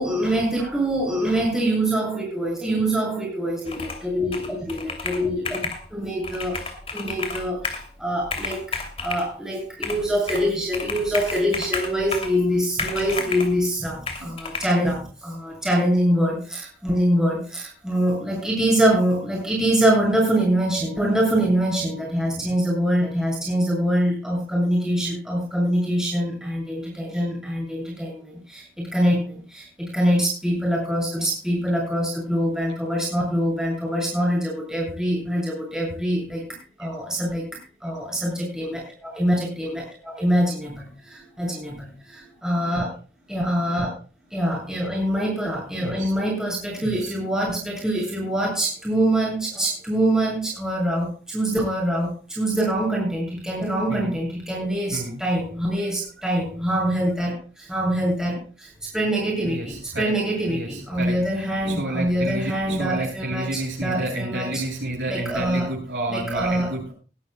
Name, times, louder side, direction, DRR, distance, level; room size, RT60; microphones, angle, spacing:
voice 1, 0.0-5.6 5.9-42.9 43.3-43.9 44.3-64.6 65.1-65.7 66.1-66.7, right 1 dB, 5° right, -2 dB, 7.3 m, -24 dB
Computer keyboard, 3.7-4.1 4.3-5.8 6.2-7.9 8.2-9.3 9.8-10.5 10.7-12.4 12.8-13.5 14.1-14.7, left 4 dB, 30° left, 2.8 m, -31 dB
voice 2, 45.7-46.1 46.8-47.1 53.9-54.2 54.9-55.2 59.4-60.1 60.5-61.2 61.7-66.9, right 1 dB, 85° right, -2 dB, 7.5 m, -30 dB
21.0 x 12.5 x 2.3 m, 0.35 s
head